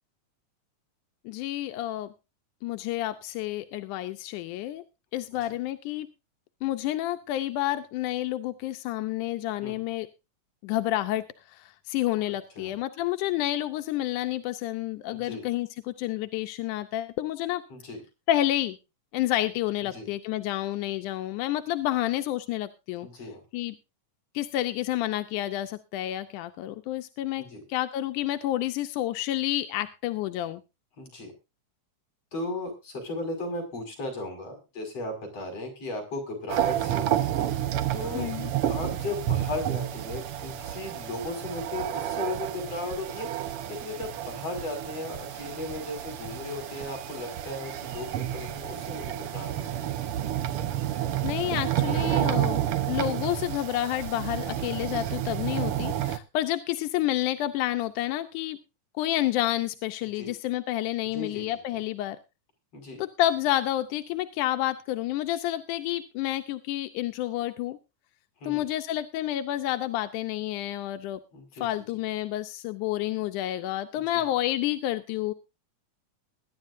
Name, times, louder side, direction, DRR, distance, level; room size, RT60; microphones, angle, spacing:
voice 1, 1.3-2.1 2.6-4.8 5.1-6.1 6.6-10.1 10.6-17.6 18.3-18.8 19.1-23.1 23.5-23.8 24.3-30.6 38.1-38.5 51.2-58.6 59.0-62.2 63.0-67.8 68.4-71.2 71.6-75.3, left 14 dB, 90° left, 8 dB, 2.3 m, -29 dB
voice 2, 15.1-15.5 17.7-18.0 19.9-20.1 23.0-23.4 27.4-27.6 31.0-31.3 32.3-37.3 37.9-38.3 38.7-43.3 43.7-49.9 60.2-60.3 61.1-61.4 62.7-63.0 68.4-68.6 71.3-71.7 74.0-74.2, left 2 dB, 50° left, 5 dB, 6.6 m, -36 dB
sound 1, 36.5-56.2, right 11 dB, 65° right, 1.5 m, -30 dB
21.5 x 10.5 x 2.6 m, 0.28 s
omnidirectional pair, 3.5 m